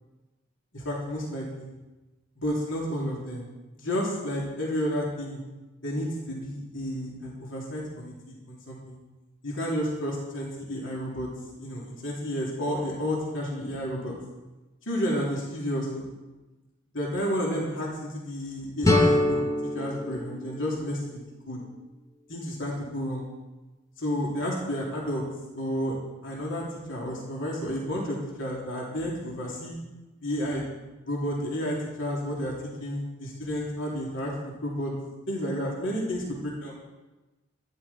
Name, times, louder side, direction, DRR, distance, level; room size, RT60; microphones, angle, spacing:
voice 1, 0.7-1.7 2.4-3.4 3.7-5.4 5.8-9.0 9.4-11.3 11.6-14.2 14.9-16.1 16.9-19.4 19.7-21.2 21.5-21.6 22.3-23.3 24.0-25.2 25.5-25.9 26.2-29.8 30.2-30.6 31.1-32.5 32.8-34.9 35.3-36.7, equal, 70° left, -3 dB, 3.1 m, -31 dB
sound 1, 18.8-21.7, left 1 dB, 15° left, 1.1 m, -25 dB
13.0 x 13.0 x 4.3 m, 1.1 s
head